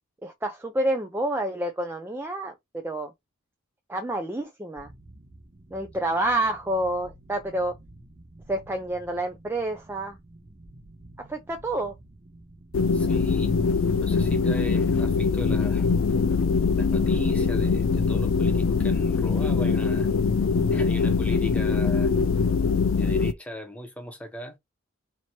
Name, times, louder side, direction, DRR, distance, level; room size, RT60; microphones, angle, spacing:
voice 1, 0.2-3.1 3.9-4.9 5.7-7.7 8.5-10.2 11.3-11.9, right 1 dB, 10° right, 0.3 m, -28 dB
sound 1, 4.8-23.2, right 1 dB, 35° right, 0.7 m, -48 dB
sound 2, 12.7-23.3, left 4 dB, 65° left, 0.4 m, -23 dB
voice 2, 12.9-13.5 14.0-15.9 16.7-20.1 20.7-22.1 23.0-24.6, left 1 dB, 5° left, 0.8 m, -38 dB
2.9 x 2.8 x 4.3 m
head